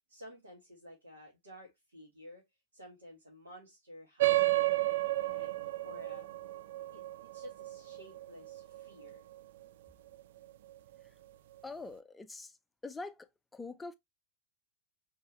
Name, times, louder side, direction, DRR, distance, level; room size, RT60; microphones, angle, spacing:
voice 1, 0.1-2.4 2.7-5.5 5.8-6.3 6.9-9.2, equal, 70° right, 1.8 m, -52 dB
sound 1, 4.2-9.1, right 18 dB, 55° right, 0.3 m, -32 dB
voice 2, 11.6-12.5 12.8-13.3 13.5-13.9, left 3 dB, 10° left, 0.6 m, -43 dB
4.6 x 3.6 x 3.1 m
figure-of-eight pair, 90°, 0 cm